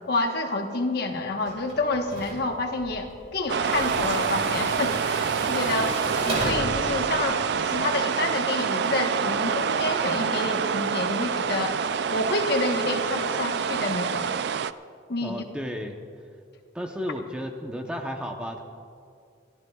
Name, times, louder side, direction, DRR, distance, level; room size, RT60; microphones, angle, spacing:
voice 1, 0.1-11.8 12.1-14.3 15.1-15.4, left 2 dB, 55° left, 3 dB, 1.2 m, -28 dB
Tools, 1.5-7.7, right 1 dB, 35° right, 2.9 m, -34 dB
sound 1, 3.5-14.7, right 6 dB, 55° right, 0.3 m, -27 dB
voice 2, 15.2-16.0 16.7-18.6, equal, 5° right, 2 dB, 0.8 m, -33 dB
29.0 x 14.5 x 2.4 m, 2.3 s
head